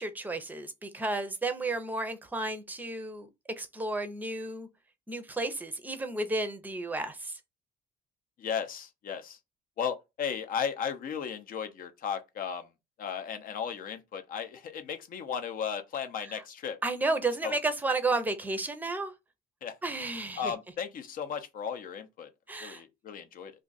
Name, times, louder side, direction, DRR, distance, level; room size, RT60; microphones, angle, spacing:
voice 1, 0.0-3.3 3.6-4.7 5.1-7.4 16.2-16.4 16.8-19.1 19.8-20.5 22.5-22.8, right 2 dB, 10° right, 0.6 m, -32 dB
voice 2, 8.4-9.4 9.8-12.7 13.0-16.8 17.4-17.5 19.6-19.8 20.4-22.3 22.6-23.5, left 7 dB, 55° left, 0.7 m, -35 dB
2.5 x 2.4 x 4.0 m
cardioid pair, 110°, 17 cm